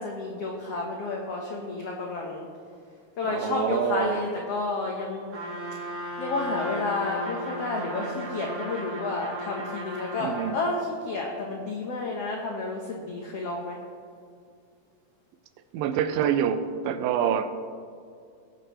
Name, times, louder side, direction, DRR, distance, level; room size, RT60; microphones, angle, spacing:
voice 1, 0.0-2.5 3.2-5.4 5.7-13.8, left 3 dB, 75° left, 0 dB, 1.4 m, -31 dB
voice 2, 3.3-4.2 10.2-10.6 15.7-17.5, right 8 dB, 80° right, 10 dB, 2.3 m, -26 dB
Trumpet, 5.3-10.6, equal, 65° right, 4.7 m, -35 dB
19.5 x 8.2 x 3.0 m, 2.2 s
omnidirectional pair, 4.3 m